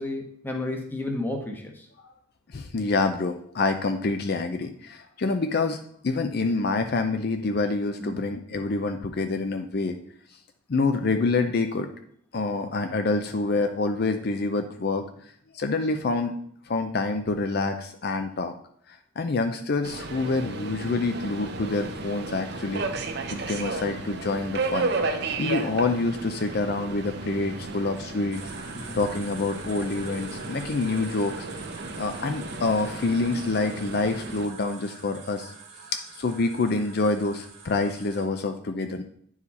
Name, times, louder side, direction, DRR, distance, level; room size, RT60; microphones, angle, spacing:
voice 1, 0.0-1.9 8.0-8.2 28.7-29.0, left 2 dB, 10° left, 2 dB, 1.0 m, -32 dB
voice 2, 2.5-5.8 6.0-10.0 10.7-11.9 12.3-16.3 16.7-18.5 18.9-22.9 23.3-24.9 25.4-28.4 28.9-31.5 32.0-35.5 35.9-39.0, left 3 dB, 50° left, 7 dB, 0.5 m, -27 dB
Subway metro underground, 19.8-34.4, right 3 dB, 55° right, 0.8 m, -34 dB
sound 1, 28.3-38.2, right 4 dB, 35° right, 1.5 m, -45 dB
9.6 x 4.8 x 4.1 m, 0.64 s
head